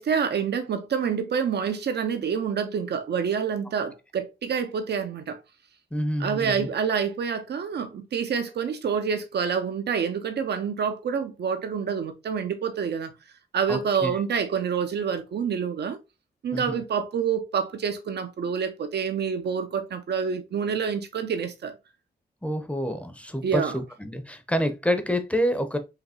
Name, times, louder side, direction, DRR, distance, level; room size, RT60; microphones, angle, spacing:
voice 1, 0.0-5.4 6.2-13.1 13.5-16.0 16.4-21.8 23.4-23.8, right 6 dB, 70° right, 0.9 m, -27 dB
voice 2, 5.9-6.7 13.7-14.1 16.5-16.8 22.4-25.8, equal, 5° left, 0.8 m, -28 dB
5.0 x 2.9 x 2.8 m
cardioid pair, 80°, 18 cm